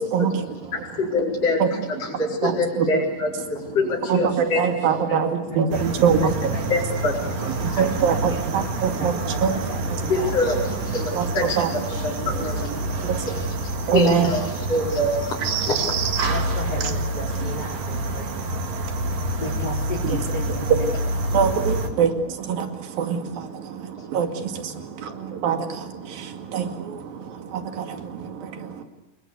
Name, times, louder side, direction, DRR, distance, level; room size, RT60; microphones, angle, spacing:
voice 1, 0.0-0.8 1.1-1.7 1.9-3.0 3.4-3.8 4.1-6.7 7.5-10.1 10.5-10.7 10.9-14.7 15.4-16.3 16.6-17.5 18.0-19.4 20.0-20.2 20.6-28.8, right 6 dB, 85° right, 7 dB, 4.1 m, -26 dB
voice 2, 1.0-1.6 2.0-4.6 6.7-7.2 7.7-7.8 10.1-11.6 12.0-12.7 13.9-14.4 14.7-15.4 15.7-15.8, left 2 dB, 45° left, -3 dB, 5.4 m, -24 dB
voice 3, 4.4-5.8 6.2-6.8 7.0-8.6 9.0-9.4 9.7-9.8 10.1-10.3 11.6-12.9 13.8-14.0 16.3-18.4 19.4-20.9, left 1 dB, 25° left, 0 dB, 5.0 m, -36 dB
sound 1, 5.7-21.9, right 2 dB, 55° right, 3.6 m, -28 dB
28.0 x 21.0 x 8.2 m, 1.0 s
omnidirectional pair, 4.0 m